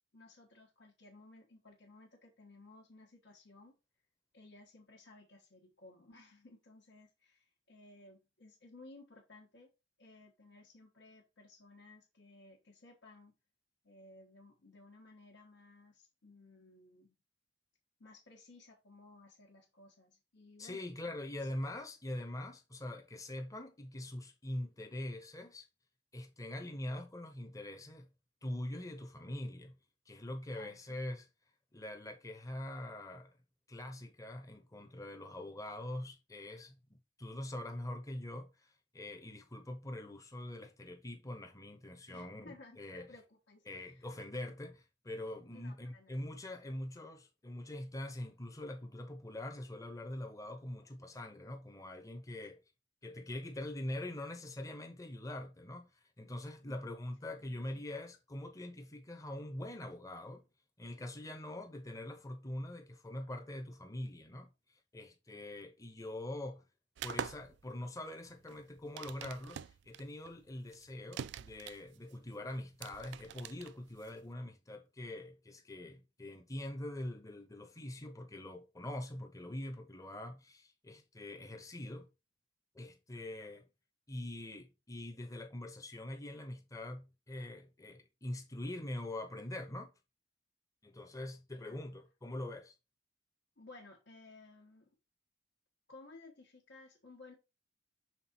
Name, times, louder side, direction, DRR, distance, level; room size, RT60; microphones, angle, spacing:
voice 1, 0.1-3.7 4.3-9.7 10.0-13.3 13.8-17.2 18.0-20.9 21.4-21.5 30.5-31.0 42.1-44.1 45.5-46.3 52.4-52.5 56.7-56.8 57.4-57.8 91.5-92.0 93.6-94.9 95.9-97.3, left 2 dB, 75° left, 1.4 m, -58 dB
voice 2, 20.6-25.7 26.1-28.1 28.4-29.8 30.1-31.3 31.7-33.3 33.7-43.1 43.7-52.6 53.0-55.9 56.2-60.4 60.8-66.6 67.0-82.1 82.7-83.7 84.1-89.9 90.8-92.7, left 1 dB, 20° left, 0.8 m, -44 dB
sound 1, 67.0-74.3, right 8 dB, 65° right, 0.3 m, -45 dB
5.9 x 3.8 x 4.3 m
head